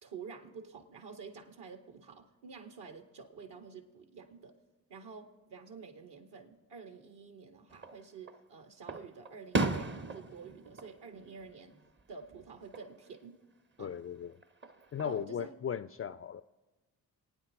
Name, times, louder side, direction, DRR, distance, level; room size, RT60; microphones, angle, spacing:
voice 1, 0.0-4.6 4.9-13.4 13.8-14.0 15.0-15.5, right 5 dB, 55° right, 6 dB, 1.9 m, -49 dB
Fireworks, 7.7-8.4 8.9-12.0 12.3-12.9 14.4-15.2, right 3 dB, 25° right, 0.9 m, -37 dB
voice 2, 13.8-14.4 14.9-16.4, left 8 dB, 30° left, 15 dB, 0.5 m, -37 dB
28.0 x 9.5 x 3.8 m, 1.1 s
figure-of-eight pair, 40°, 48 cm